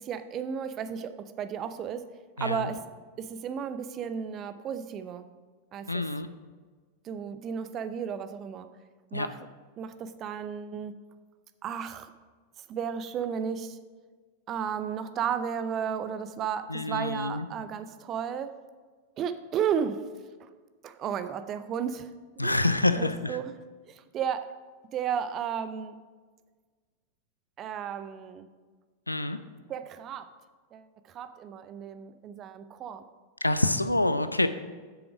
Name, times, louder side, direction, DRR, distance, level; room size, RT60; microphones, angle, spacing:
voice 1, 0.0-2.1 2.4-2.8 3.2-5.3 5.7-6.1 7.0-8.7 9.1-9.4 9.8-11.0 11.6-12.1 12.6-13.8 14.5-18.5 19.2-20.0 20.4-20.5 20.8-22.7 22.9-23.6 23.8-24.5 24.9-26.0 27.6-28.5 29.7-30.3 30.7-33.0, right 8 dB, 30° right, 11 dB, 0.6 m, -33 dB
voice 2, 2.4-2.7 5.9-6.3 9.1-9.3 16.7-17.5 22.4-23.1 29.1-29.4 33.4-34.5, left 2 dB, 85° left, 11 dB, 0.4 m, -26 dB
8.0 x 6.9 x 5.0 m, 1.4 s
figure-of-eight pair, 90°, 0 cm